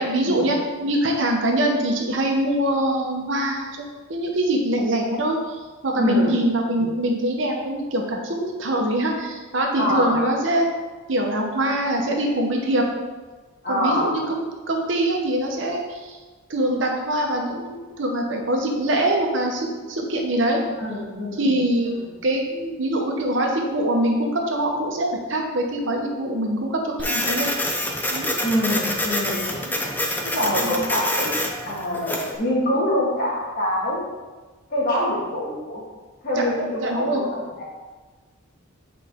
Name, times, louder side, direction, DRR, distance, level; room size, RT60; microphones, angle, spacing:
voice 1, 0.0-3.7 4.1-10.7 11.1-12.8 13.7-16.2 16.5-20.6 21.4-21.9 22.2-27.6 28.1-28.4 29.6-29.9 30.5-30.7 36.8-37.3, right 1 dB, 60° right, 1 dB, 0.9 m, -23 dB
voice 2, 6.0-6.4 9.8-10.2 13.6-14.1 20.8-21.5 22.0-22.1 28.4-29.5 30.2-31.3 31.6-34.0 34.7-35.8 36.2-37.7, equal, 45° left, -5 dB, 1.8 m, -25 dB
Printer, 27.0-32.4, left 1 dB, 10° left, 0.5 m, -26 dB
8.1 x 4.1 x 3.6 m, 1.3 s
head